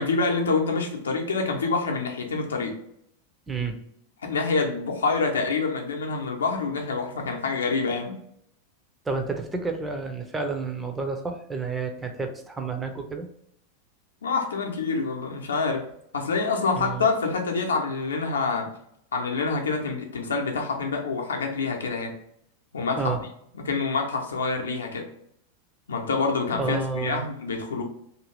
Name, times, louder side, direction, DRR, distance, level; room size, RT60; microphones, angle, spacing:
voice 1, 0.0-2.7 4.2-8.2 14.2-15.8 16.1-18.7 19.1-22.1 22.7-23.1 23.5-25.1 25.9-27.8, left 4 dB, 70° left, 2 dB, 0.6 m, -26 dB
voice 2, 3.5-3.8 9.1-13.3 16.7-17.1 23.0-23.2 26.6-27.3, right 4 dB, 15° right, 4 dB, 0.5 m, -30 dB
2.6 x 2.4 x 3.2 m, 0.71 s
figure-of-eight pair, 90°, 0 cm